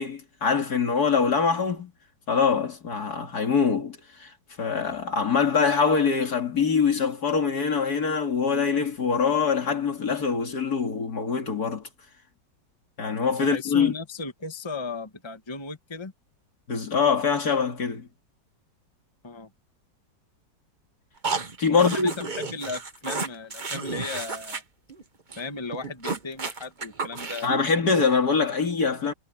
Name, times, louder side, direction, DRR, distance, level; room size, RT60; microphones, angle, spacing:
voice 1, 0.0-1.9 2.3-11.9 13.0-13.9 16.7-18.1 21.6-22.3 27.4-29.1, left 5 dB, 60° left, 2.9 m, -24 dB
voice 2, 13.4-16.1 19.2-19.5 21.7-24.6 25.4-27.7, left 4 dB, 15° left, 1.6 m, -36 dB
sound 1, 21.2-24.6 24.9-25.0 25.3-25.4 25.7-27.6, right 4 dB, 30° right, 1.2 m, -32 dB
omnidirectional pair, 1.9 m